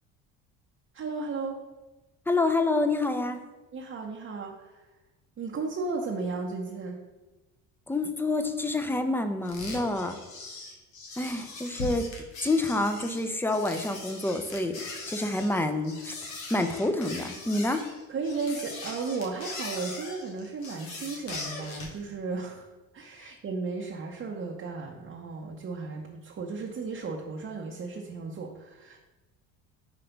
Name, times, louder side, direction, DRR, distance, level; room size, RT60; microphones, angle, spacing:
voice 1, 0.9-1.6 3.7-4.8 5.4-7.0 18.1-22.7 22.9-29.0, right 4 dB, 35° right, -1 dB, 0.9 m, -35 dB
voice 2, 2.3-3.4 7.9-10.2 11.2-12.1 12.4-16.1 16.5-17.8 23.2-23.3, left 2 dB, 5° left, 7 dB, 0.7 m, -28 dB
sound 1, 9.5-22.0, left 3 dB, 90° left, 1.3 m, -40 dB
5.9 x 3.3 x 5.3 m, 1.1 s
hypercardioid pair, 65°, 38 cm